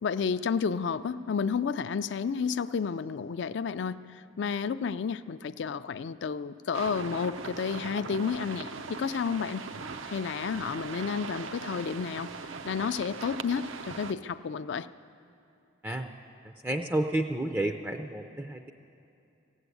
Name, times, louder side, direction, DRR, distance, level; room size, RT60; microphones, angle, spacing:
voice 1, 0.0-9.6 10.1-12.3 12.6-14.9, left 6 dB, 60° left, 14 dB, 0.4 m, -31 dB
sound 1, 6.7-14.1, right 4 dB, 80° right, 0.6 m, -40 dB
voice 2, 16.6-18.7, right 1 dB, 10° right, 4 dB, 0.4 m, -30 dB
16.0 x 8.0 x 9.6 m, 2.7 s
head